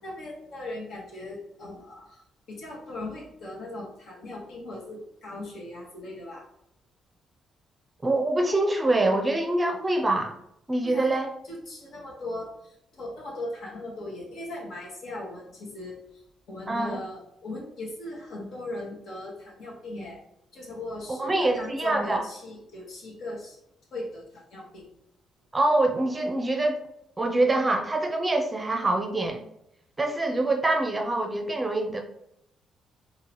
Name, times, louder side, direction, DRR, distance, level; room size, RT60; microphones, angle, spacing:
voice 1, 0.0-6.4 10.8-11.2 11.5-16.2 16.5-20.2 20.5-23.6 23.9-24.9, left 1 dB, 70° left, -2 dB, 1.3 m, -38 dB
voice 2, 8.0-10.3 10.7-11.3 16.7-17.0 21.2-22.2 25.5-26.8 27.2-29.4 30.0-32.0, right 2 dB, 20° right, 4 dB, 0.6 m, -25 dB
3.8 x 2.8 x 2.9 m, 0.77 s
cardioid pair, 90°, 0 cm